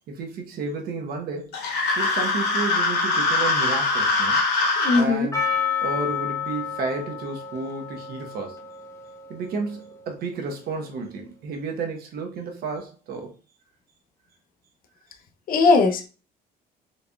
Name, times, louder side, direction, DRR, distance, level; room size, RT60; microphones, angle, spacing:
voice 1, 0.1-1.5 2.0-4.4 4.9-5.4 5.8-8.6 9.3-13.3, right 4 dB, 65° right, 1.0 m, -32 dB
sound 1, 1.5-5.0, left 3 dB, 75° left, 1.3 m, -22 dB
voice 2, 4.8-5.3 15.5-16.1, left 3 dB, 60° left, 0.7 m, -19 dB
Percussion, 5.3-10.3, left 7 dB, 15° left, 0.9 m, -30 dB
4.0 x 3.2 x 2.3 m
cardioid pair, 110°, 17 cm